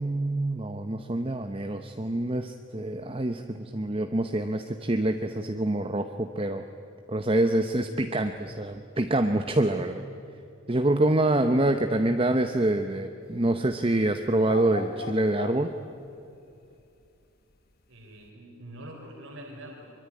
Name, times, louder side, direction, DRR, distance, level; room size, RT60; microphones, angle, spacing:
voice 1, 0.0-6.6 7.1-10.0 10.7-15.7, right 1 dB, 25° right, 6 dB, 0.9 m, -26 dB
sound 1, 14.4-16.1, left 3 dB, 45° left, 1.4 m, -38 dB
voice 2, 17.9-19.9, right 1 dB, 70° right, 0 dB, 4.0 m, -44 dB
24.0 x 23.0 x 9.7 m, 2.6 s
head